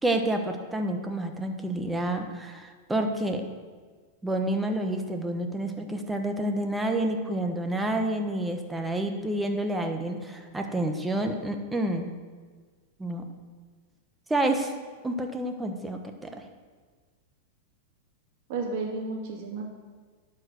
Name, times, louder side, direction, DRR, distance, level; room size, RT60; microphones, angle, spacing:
voice 1, 0.0-3.4 4.2-12.1 13.0-13.2 14.3-14.7 15.0-16.4, right 1 dB, 10° right, 5 dB, 1.1 m, -29 dB
voice 2, 18.5-19.6, right 3 dB, 55° right, 0 dB, 2.3 m, -32 dB
11.5 x 4.8 x 6.3 m, 1.5 s
hypercardioid pair, 120°, 0 cm